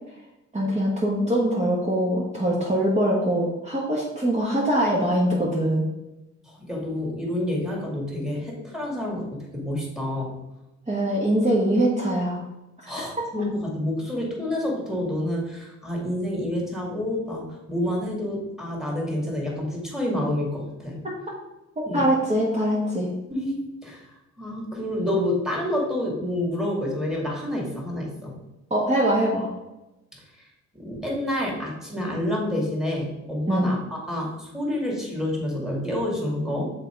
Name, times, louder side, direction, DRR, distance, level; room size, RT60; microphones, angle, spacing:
voice 1, 0.5-5.9 10.9-12.4 21.8-23.1 28.7-29.5 33.5-33.7, right 1 dB, 20° right, -5 dB, 1.4 m, -23 dB
voice 2, 6.5-10.3 12.9-21.0 21.9-22.1 23.3-24.1 24.4-28.3 30.7-36.7, left 1 dB, ahead, -3 dB, 2.2 m, -28 dB
6.0 x 4.2 x 4.5 m, 0.97 s
cardioid pair, 90°, 30 cm